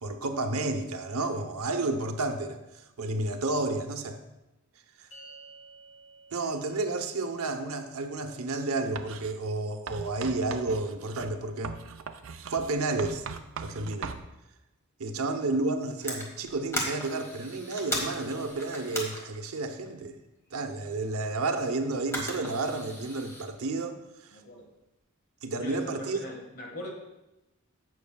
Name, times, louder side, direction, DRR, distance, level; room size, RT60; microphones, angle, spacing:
voice 1, 0.0-2.6 3.0-4.2 5.0-5.1 6.3-11.8 12.5-13.2 13.6-14.2 15.0-20.2 20.5-24.4 25.4-26.2, right 2 dB, 85° right, 6 dB, 0.8 m, -31 dB
sound 1, 5.1-11.6, right 2 dB, 85° left, 2.4 m, -56 dB
Writing, 9.0-9.3 9.9-14.3, right 5 dB, 60° right, 0.5 m, -40 dB
sound 2, 16.0-20.1 21.2-21.5 22.1-23.5, equal, 10° left, 1.4 m, -37 dB
voice 2, 24.3-24.7 25.4-26.9, left 1 dB, 45° left, 1 dB, 1.6 m, -41 dB
15.5 x 6.3 x 2.3 m, 0.97 s
head